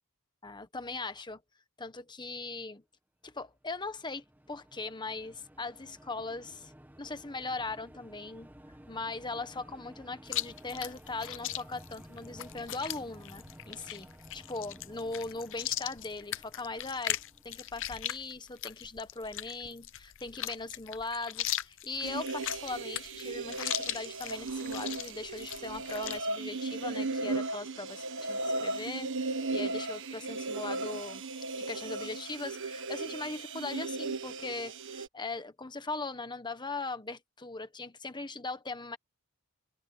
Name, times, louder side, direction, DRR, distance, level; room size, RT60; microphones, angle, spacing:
voice 1, 0.4-1.4 1.8-2.8 3.2-6.7 7.0-8.5 8.9-14.1 14.3-17.2 17.4-39.0, left 3 dB, 20° left, 1.2 m, -40 dB
sound 1, 3.6-18.1, equal, 10° right, 1.6 m, -54 dB
Chewing mastication, 10.3-26.2, left 13 dB, 60° left, 0.7 m, -39 dB
sound 2, 22.0-35.1, right 3 dB, 60° right, 1.5 m, -36 dB
head